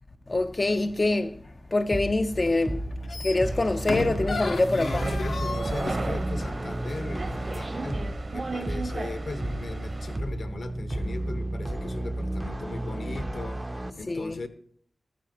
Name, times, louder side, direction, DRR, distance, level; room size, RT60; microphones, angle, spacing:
voice 1, 0.3-5.0 14.1-14.4, left 2 dB, 35° left, 0.5 m, -25 dB
sound 1, 1.9-13.9, right 1 dB, 20° right, 0.6 m, -33 dB
sound 2, 2.4-2.6 2.9-6.1 6.6-6.7, left 3 dB, 85° left, 1.2 m, -34 dB
sound 3, 3.3-10.2, right 3 dB, 45° right, 0.9 m, -36 dB
voice 2, 4.7-8.0 8.3-14.5, left 3 dB, 70° left, 1.1 m, -38 dB
14.0 x 13.5 x 2.9 m
wide cardioid pair, 110°, 0 cm